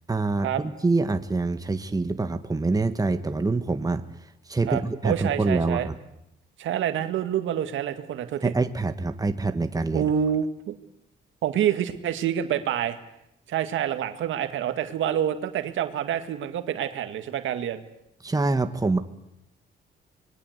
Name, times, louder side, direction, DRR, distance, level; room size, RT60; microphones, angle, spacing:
voice 1, 0.1-4.1 4.5-6.0 8.4-10.1 18.2-19.0, right 3 dB, 20° right, 8 dB, 1.7 m, -25 dB
voice 2, 4.7-5.9 6.6-8.5 9.9-10.8 11.4-13.0 13.5-17.8, right 9 dB, 80° right, 8 dB, 2.1 m, -27 dB
26.5 x 21.5 x 8.2 m, 0.82 s
cardioid pair, 90°, 20 cm